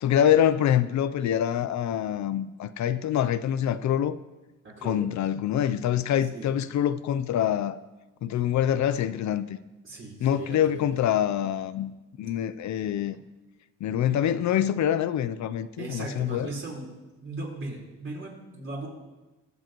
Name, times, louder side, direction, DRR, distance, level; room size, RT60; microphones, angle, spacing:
voice 1, 0.0-4.2 4.8-7.8 8.2-9.6 10.2-11.9 12.2-13.1 13.8-16.5, left 10 dB, 65° left, 0.6 m, -25 dB
voice 2, 4.6-5.1 6.3-6.5 9.8-10.8 15.8-16.9 17.1-18.9, right 2 dB, 40° right, 4.2 m, -37 dB
22.5 x 7.5 x 3.0 m
cardioid pair, 110°, 30 cm